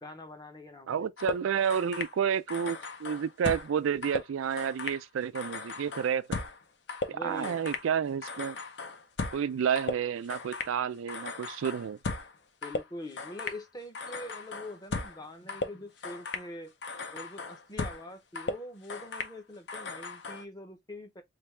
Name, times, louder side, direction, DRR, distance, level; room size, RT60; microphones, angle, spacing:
voice 1, 0.0-1.1 7.1-7.6 12.6-16.7 17.1-21.2, left 1 dB, 20° left, 0.7 m, -44 dB
voice 2, 0.9-6.3 7.1-8.6 9.3-12.0, right 7 dB, 85° right, 0.3 m, -30 dB
sound 1, 1.2-2.2 2.5-3.8 4.0-5.0 5.4-7.9 8.2-9.5 9.8-10.8 11.1-12.4 12.6-13.6 14.0-15.2 15.5-16.5 16.8-18.1 18.4-19.4 19.7-20.5, left 3 dB, 55° left, 0.6 m, -37 dB
3.3 x 2.7 x 3.2 m
head